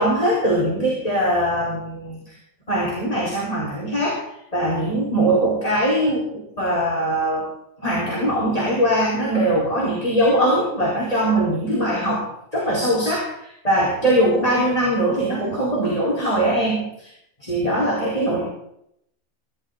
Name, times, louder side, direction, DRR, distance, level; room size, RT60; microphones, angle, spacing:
voice 1, 0.0-2.3 2.7-4.2 4.5-7.5 7.8-12.2 12.5-17.1 17.4-18.4, right 1 dB, 25° left, -4 dB, 4.7 m, -21 dB
23.0 x 14.5 x 4.0 m, 0.75 s
omnidirectional pair, 1.5 m